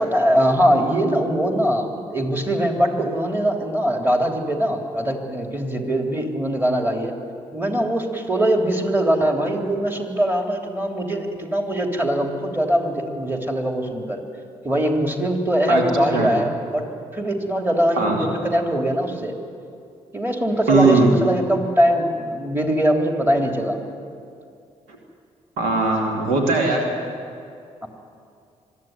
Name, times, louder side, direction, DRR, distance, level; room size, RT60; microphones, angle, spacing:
voice 1, 0.0-7.1 7.5-14.2 14.6-16.9 17.1-19.4 20.1-23.8 27.8-27.9, right 1 dB, 15° right, 2 dB, 3.4 m, -22 dB
voice 2, 18.0-18.3 20.7-21.1 25.6-26.8, right 3 dB, 75° right, 1 dB, 2.6 m, -19 dB
22.5 x 13.5 x 9.5 m, 2.4 s
hypercardioid pair, 40°, 16 cm